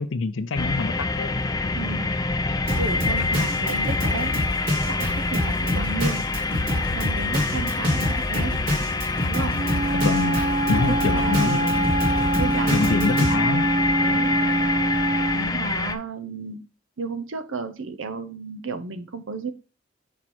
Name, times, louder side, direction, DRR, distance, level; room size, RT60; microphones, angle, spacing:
voice 1, 0.0-1.4 3.2-3.3 9.9-10.4 10.7-11.9 12.7-13.7, left 4 dB, 80° left, 10 dB, 0.5 m, -26 dB
sound 1, 0.6-16.0, left 3 dB, 20° left, 0.4 m, -26 dB
voice 2, 1.7-2.1 2.5-4.4 4.8-6.2 6.9-8.6 9.3-9.6 10.9-11.7 12.4-13.4 14.0-14.4 15.3-16.7 17.0-19.5, right 4 dB, 90° right, 9 dB, 0.8 m, -33 dB
Drum kit, 2.7-13.3, left 1 dB, 50° right, 1.7 m, -27 dB
Wind instrument woodwind instrument, 9.5-15.5, right 2 dB, 30° right, 0.6 m, -25 dB
5.2 x 4.3 x 4.3 m, 0.32 s
head